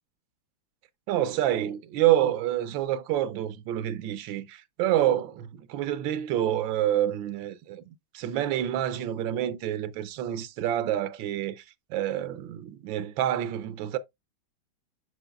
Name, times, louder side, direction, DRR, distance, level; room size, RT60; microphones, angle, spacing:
voice 1, 1.1-7.8 8.1-11.6 11.9-14.0, right 12 dB, 80° right, 1.3 m, -27 dB
7.8 x 6.4 x 2.2 m
omnidirectional pair, 2.1 m